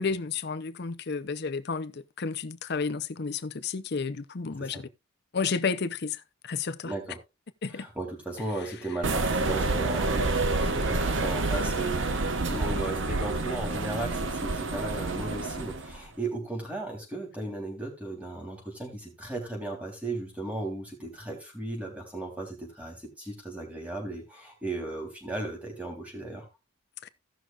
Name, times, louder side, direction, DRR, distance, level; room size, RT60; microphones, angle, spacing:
voice 1, 0.0-4.9 5.3-6.9 7.6-7.9 27.0-27.1, left 5 dB, 55° left, 0.7 m, -32 dB
voice 2, 6.8-7.2 7.7-12.0 12.5-26.5, right 2 dB, 5° right, 3.5 m, -36 dB
sound 1, 9.0-16.0, right 3 dB, 65° right, 1.0 m, -28 dB
17.0 x 6.2 x 2.4 m
head